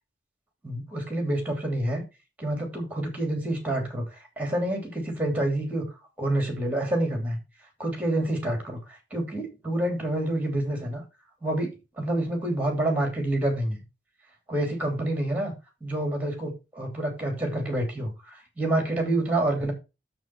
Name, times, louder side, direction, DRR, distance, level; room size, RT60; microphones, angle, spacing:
voice 1, 0.6-2.0 2.4-4.0 4.4-5.8 6.2-7.4 7.8-11.0 11.4-13.8 14.5-15.5 15.8-19.7, right 1 dB, 10° right, 3 dB, 2.9 m, -28 dB
7.1 x 6.1 x 5.9 m, 0.28 s
head